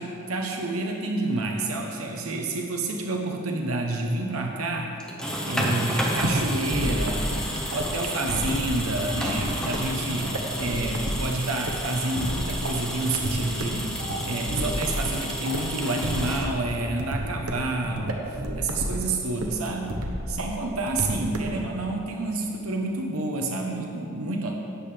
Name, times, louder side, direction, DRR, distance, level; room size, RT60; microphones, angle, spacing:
voice 1, 0.0-4.9 5.4-13.9 14.2-19.9 20.3-24.6, right 2 dB, 70° right, 1 dB, 0.9 m, -29 dB
sound 1, 5.0-16.9, equal, 5° left, 1.2 m, -31 dB
sound 2, 6.2-21.6, right 1 dB, 85° right, 1.1 m, -31 dB
17.0 x 7.6 x 3.4 m, 2.8 s
head